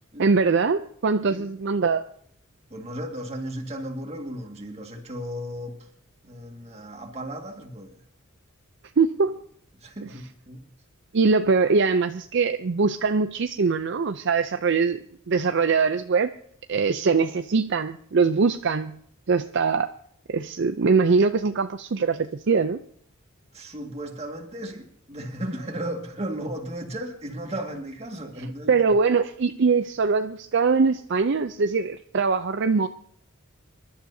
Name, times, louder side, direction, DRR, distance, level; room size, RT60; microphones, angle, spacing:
voice 1, 0.2-2.1 9.0-9.4 11.1-15.0 15.3-16.3 16.7-19.0 19.3-19.9 20.3-22.8 28.7-32.9, right 4 dB, 55° right, 0.5 m, -22 dB
voice 2, 2.7-5.9 6.2-8.0 9.8-10.6 23.5-28.8, right 1 dB, 30° right, 2.0 m, -35 dB
26.0 x 12.0 x 2.8 m
head